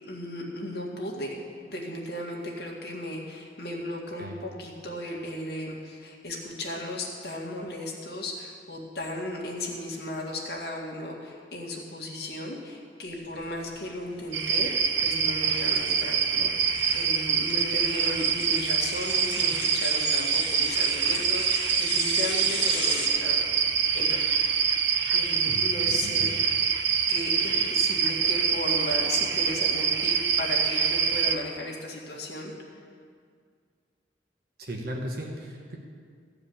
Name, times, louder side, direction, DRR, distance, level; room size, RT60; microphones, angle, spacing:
voice 1, 0.0-1.4 1.7-23.5 23.9-24.4 25.1-26.3 27.1-32.5, left 1 dB, 60° left, -2 dB, 1.9 m, -36 dB
sound 1, 13.1-23.1, left 3 dB, 30° left, 1.8 m, -37 dB
sound 2, 14.3-31.4, right 6 dB, 85° right, 0.7 m, -25 dB
voice 2, 25.5-26.4 34.6-35.8, right 1 dB, 55° right, 1 dB, 1.2 m, -37 dB
14.5 x 4.9 x 8.7 m, 2.1 s
head